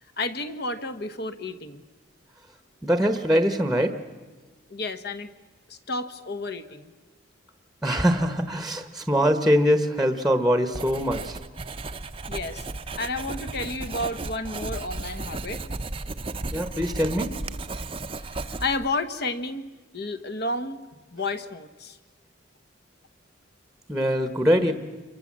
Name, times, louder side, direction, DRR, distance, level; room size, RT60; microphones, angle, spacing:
voice 1, 0.2-1.8 4.7-5.3 5.7-6.9 12.3-12.7 13.0-15.7 18.3-19.7 19.9-20.8 21.1-22.0, left 2 dB, 50° left, 10 dB, 1.3 m, -31 dB
voice 2, 2.8-4.0 7.8-11.4 16.5-17.3 23.9-24.7, equal, ahead, 9 dB, 1.1 m, -23 dB
Writing, 10.7-18.9, right 2 dB, 25° right, 0.7 m, -34 dB
27.5 x 23.0 x 7.5 m, 1.3 s
head